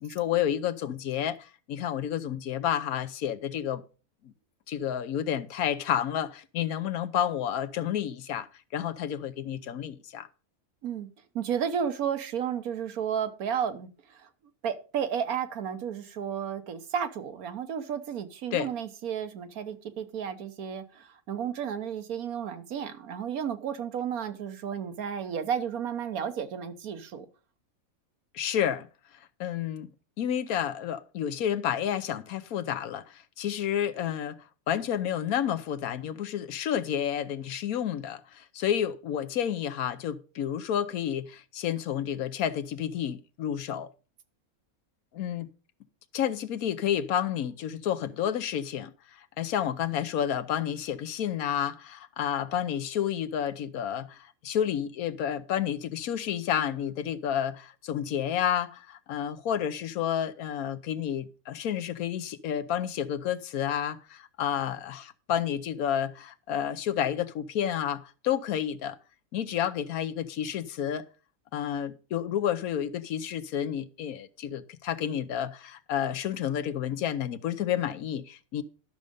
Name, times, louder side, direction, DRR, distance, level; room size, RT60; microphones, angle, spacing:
voice 1, 0.0-3.8 4.2-4.3 4.7-8.5 8.7-10.3 18.5-18.7 28.3-28.9 29.4-29.9 30.2-34.4 34.7-43.9 45.1-45.5 46.1-48.9 49.4-69.0 69.3-71.0 71.5-78.6, left 9 dB, 85° left, 1.2 m, -30 dB
voice 2, 11.3-14.3 14.6-27.3, right 8 dB, 90° right, 1.5 m, -32 dB
12.0 x 6.4 x 5.2 m
omnidirectional pair, 1.5 m